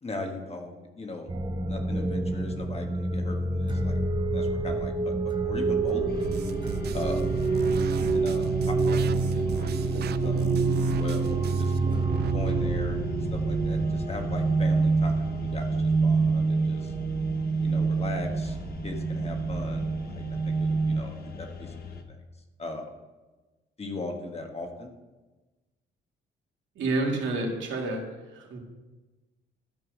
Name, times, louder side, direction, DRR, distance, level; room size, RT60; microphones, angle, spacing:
voice 1, 0.0-1.3 1.7-4.0 4.3-6.1 6.9-7.4 8.1-9.0 9.3-10.6 10.9-11.7 12.3-13.0 13.3-16.9 17.6-18.6 18.8-21.7 22.1-22.2 22.6-22.9 23.8-24.9, left 2 dB, 30° left, 3 dB, 1.4 m, -38 dB
sound 1, 1.3-21.0, right 3 dB, 25° right, 0.8 m, -27 dB
sound 2, 6.1-22.0, left 4 dB, 50° left, 1.0 m, -41 dB
sound 3, 6.2-12.3, right 11 dB, 55° right, 0.4 m, -37 dB
voice 2, 26.8-28.0 28.3-28.6, right 2 dB, 75° right, 0 dB, 2.2 m, -29 dB
12.5 x 4.6 x 6.2 m, 1.2 s
cardioid pair, 90°, 20 cm